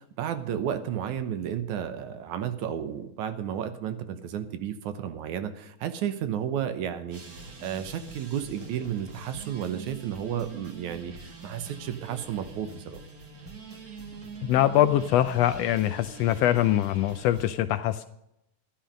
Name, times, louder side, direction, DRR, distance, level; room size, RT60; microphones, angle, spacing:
voice 1, 0.0-7.2 7.6-11.1 11.4-13.0, right 9 dB, 75° right, 9 dB, 2.3 m, -32 dB
sound 1, 7.1-17.5, right 4 dB, 35° right, 1.6 m, -44 dB
voice 2, 14.4-18.0, left 12 dB, 85° left, 10 dB, 1.4 m, -23 dB
13.0 x 11.5 x 5.2 m, 0.79 s
omnidirectional pair, 3.5 m